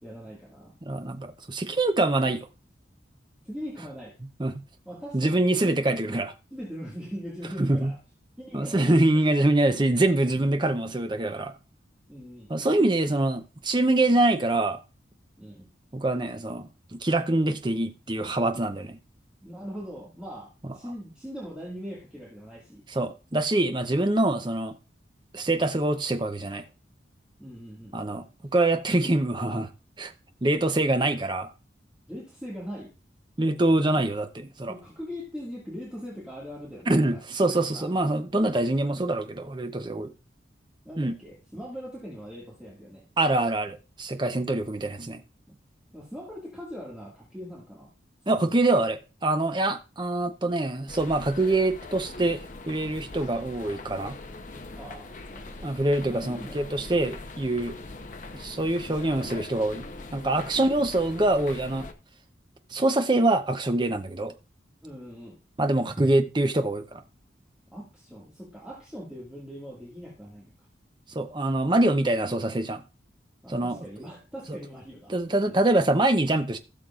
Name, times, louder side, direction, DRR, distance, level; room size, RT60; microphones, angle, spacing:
voice 1, 0.0-0.8 3.4-4.2 4.9-5.7 6.5-8.0 8.4-9.0 12.1-12.5 15.4-15.7 19.4-22.8 27.4-27.9 32.1-32.9 33.9-34.1 34.7-37.9 40.8-43.0 45.5-45.6 45.9-47.9 48.2-48.5 54.7-55.7 56.0-57.0 60.5-60.9 64.8-65.4 67.7-70.5 73.4-75.2 75.5-75.6, equal, 5° right, 1.8 m, -41 dB
voice 2, 0.8-2.5 4.4-4.6 5.1-6.3 7.6-7.9 8.5-11.5 12.5-14.8 15.9-19.0 20.6-20.7 22.9-24.7 25.3-26.6 27.9-29.7 30.0-30.1 30.4-31.5 33.4-34.7 36.9-40.1 41.0-41.1 43.2-45.2 48.3-52.4 52.7-54.2 55.6-57.8 58.3-59.9 60.1-61.9 62.7-64.3 65.6-67.0 71.1-72.8 73.5-73.8 75.1-76.6, right 2 dB, 25° right, 0.6 m, -25 dB
sound 1, 50.9-61.9, left 2 dB, 40° left, 0.7 m, -42 dB
16.5 x 6.5 x 2.4 m
head